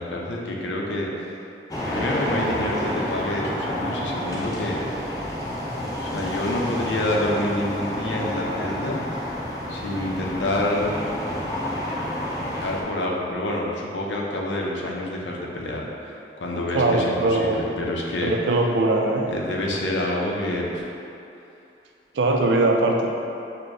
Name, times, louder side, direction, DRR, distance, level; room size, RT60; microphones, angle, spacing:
voice 1, 0.0-1.3 1.9-5.1 6.0-9.0 9.7-11.0 12.6-18.3 19.3-20.8, left 1 dB, 90° left, -2 dB, 0.6 m, -27 dB
sound 1, 1.7-12.8, left 1 dB, 20° left, 0.5 m, -29 dB
voice 2, 16.7-17.6 18.2-19.3 22.1-23.1, right 2 dB, 80° right, 1 dB, 0.4 m, -21 dB
6.2 x 2.1 x 2.6 m, 2.7 s
head